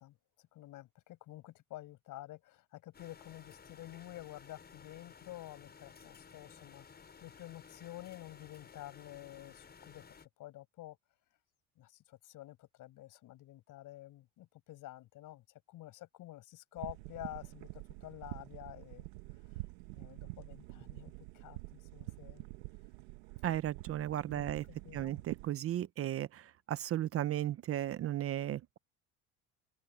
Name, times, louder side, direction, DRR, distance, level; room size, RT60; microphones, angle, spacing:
voice 1, 0.0-11.0 11.8-19.6 19.9-22.4 24.3-25.2, left 15 dB, 55° left, 7.7 m, -50 dB
sound 1, 2.9-10.3, left 6 dB, 25° left, 7.6 m, -56 dB
sound 2, 16.8-25.5, right 21 dB, 80° right, 1.4 m, -47 dB
voice 2, 23.4-24.6 24.9-28.8, right 12 dB, 35° right, 0.7 m, -35 dB
open air
cardioid pair, 120°, 37 cm